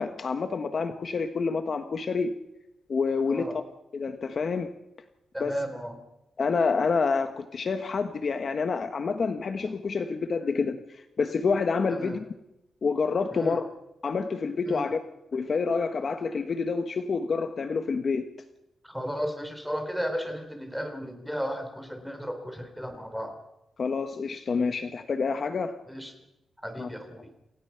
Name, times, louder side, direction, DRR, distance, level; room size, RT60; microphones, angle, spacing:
voice 1, 0.0-2.3 2.9-3.6 3.9-4.7 5.4-5.5 6.4-12.2 12.8-13.6 14.0-15.0 15.3-18.3 23.8-25.7 26.8-26.9, left 4 dB, 45° left, 8 dB, 1.2 m, -28 dB
voice 2, 3.3-3.6 5.3-6.0 11.9-12.2 13.3-13.6 14.6-14.8 18.8-23.3 25.9-26.1 26.6-27.3, equal, ahead, 6 dB, 3.6 m, -34 dB
28.5 x 16.5 x 5.8 m, 0.89 s
wide cardioid pair, 135°, 0 cm